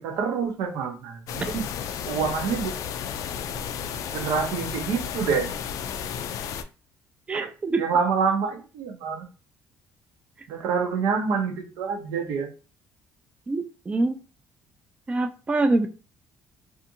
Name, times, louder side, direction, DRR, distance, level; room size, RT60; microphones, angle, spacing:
voice 1, 0.0-1.6 2.1-2.7 4.1-5.5 7.3-7.5 7.8-9.3 10.5-12.5, right 6 dB, 85° right, 4 dB, 0.7 m, -27 dB
sound 1, 1.3-6.6, left 8 dB, 70° left, 0.3 m, -33 dB
voice 2, 7.3-7.8 13.5-14.2 15.1-15.9, right 2 dB, 20° right, 8 dB, 0.3 m, -24 dB
2.6 x 2.5 x 2.6 m, 0.35 s
cardioid pair, 95°, 6 cm